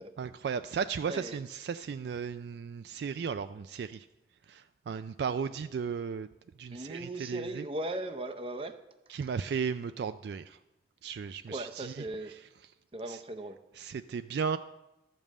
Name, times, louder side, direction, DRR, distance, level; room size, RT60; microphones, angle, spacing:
voice 1, 0.2-4.1 4.5-6.3 6.6-7.6 9.1-10.6 11.0-12.5 13.1-13.2 13.7-14.6, right 6 dB, 70° right, 10 dB, 0.3 m, -35 dB
voice 2, 6.7-8.8 11.5-12.3 12.9-13.6, right 1 dB, 30° right, 8 dB, 0.6 m, -38 dB
12.5 x 5.3 x 7.4 m, 0.97 s
head